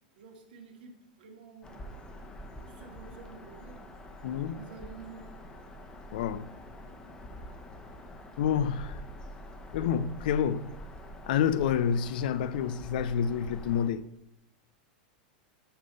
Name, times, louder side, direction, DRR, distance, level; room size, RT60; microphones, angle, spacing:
voice 1, 0.2-1.9 2.6-3.8 4.5-5.3 7.3-7.5, right 5 dB, 80° right, 1.7 m, -50 dB
Bird vocalization bird call bird song, 1.6-13.9, equal, 15° left, 1.0 m, -46 dB
voice 2, 4.2-4.6 6.1-6.5 8.4-9.0 9.7-10.7 11.3-14.0, left 8 dB, 70° left, 0.5 m, -28 dB
7.0 x 5.3 x 5.3 m
supercardioid pair, 125°, 5 cm